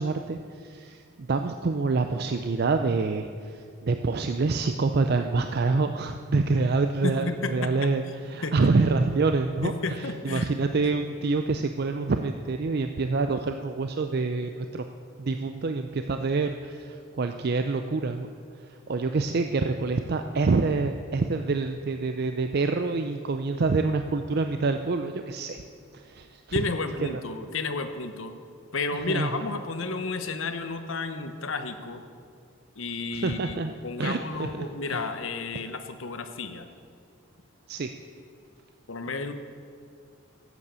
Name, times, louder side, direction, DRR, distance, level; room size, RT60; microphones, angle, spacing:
voice 1, 0.0-14.8 15.2-18.3 18.6-25.6 25.9-26.6 27.1-27.2 29.1-29.4 33.1-33.7 34.0-35.0 37.7-37.9, right 3 dB, 50° right, 7 dB, 0.4 m, -27 dB
voice 2, 7.0-7.7 8.4-8.6 9.6-10.5 26.5-28.3 28.7-32.0 32.8-36.7 38.9-39.3, left 3 dB, 70° left, 8 dB, 0.9 m, -32 dB
13.5 x 8.2 x 6.8 m, 2.2 s
head